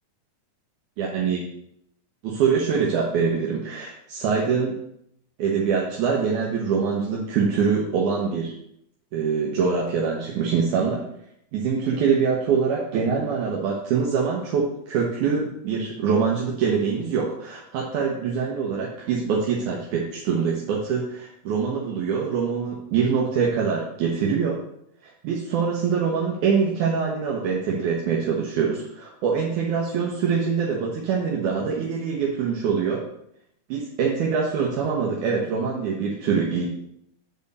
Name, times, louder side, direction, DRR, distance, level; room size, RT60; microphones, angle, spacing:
voice 1, 1.0-1.4 2.2-4.8 5.4-8.5 9.1-11.0 11.5-24.6 25.0-33.0 33.7-36.7, right 6 dB, 75° right, -2 dB, 2.5 m, -24 dB
8.9 x 4.2 x 6.7 m, 0.74 s
omnidirectional pair, 3.6 m